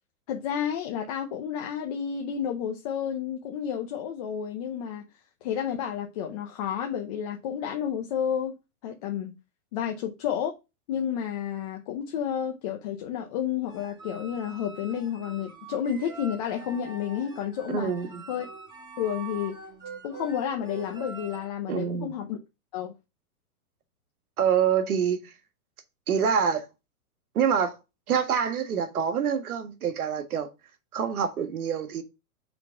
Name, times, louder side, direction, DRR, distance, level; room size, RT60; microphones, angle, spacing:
voice 1, 0.3-5.0 5.4-9.3 9.7-10.5 10.9-17.9 18.3-18.4 19.0-19.5 20.0-22.4 22.7-22.9, left 8 dB, 30° left, 0.7 m, -31 dB
sound 1, 13.6-21.5, right 4 dB, 10° right, 2.0 m, -44 dB
voice 2, 17.7-18.2 21.7-22.2 24.4-25.3 26.1-26.6 27.3-27.8 28.1-30.5 30.9-32.0, right 7 dB, 90° right, 1.7 m, -26 dB
5.1 x 4.0 x 5.8 m
hypercardioid pair, 165°, 43 cm